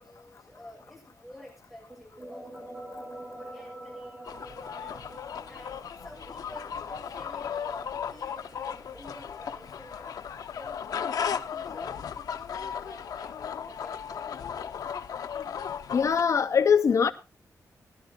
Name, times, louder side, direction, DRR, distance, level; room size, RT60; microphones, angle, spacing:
voice 1, 0.0-2.5 3.3-5.0 5.5-10.9 11.1-12.1 12.3-14.6, left 1 dB, 5° right, 7.2 m, -50 dB
sound 1, 1.9-11.3, right 1 dB, 20° right, 2.9 m, -47 dB
sound 2, 4.3-16.2, left 7 dB, 85° left, 0.7 m, -36 dB
voice 2, 15.9-17.1, left 6 dB, 55° left, 0.6 m, -22 dB
18.0 x 12.0 x 2.9 m
wide cardioid pair, 170°, 6 cm